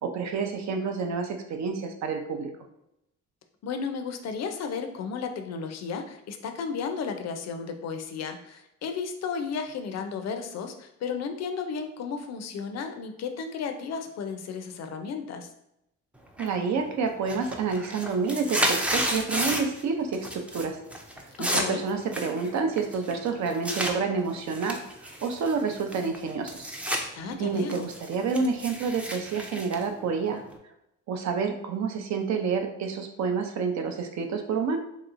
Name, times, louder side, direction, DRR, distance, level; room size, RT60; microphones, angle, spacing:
voice 1, 0.0-2.5 16.4-20.8 21.4-24.8 25.2-26.7 27.3-30.4 31.1-34.8, right 5 dB, 65° right, 5 dB, 0.6 m, -29 dB
voice 2, 3.6-15.5 21.5-21.8 27.1-27.9, left 5 dB, 60° left, 7 dB, 0.5 m, -33 dB
sound 1, 16.4-16.8 17.1-19.8 20.1-20.6 20.9-23.9 24.5-27.0 27.4-30.6, equal, 5° right, 0.4 m, -31 dB
3.1 x 2.8 x 2.5 m, 0.82 s
cardioid pair, 90°, 30 cm